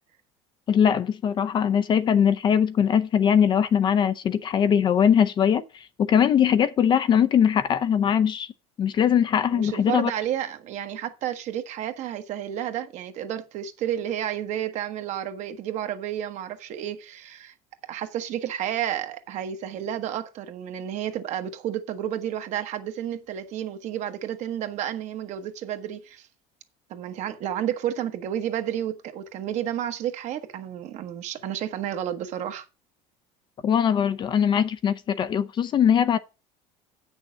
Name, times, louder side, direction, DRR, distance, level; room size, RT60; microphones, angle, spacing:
voice 1, 0.7-8.5 8.8-10.1 33.6-36.2, left 8 dB, 30° left, 0.5 m, -21 dB
voice 2, 9.5-17.5 17.9-26.3 26.9-32.6, right 10 dB, 50° right, 1.2 m, -31 dB
8.6 x 6.3 x 5.6 m
cardioid pair, 150°, 15 cm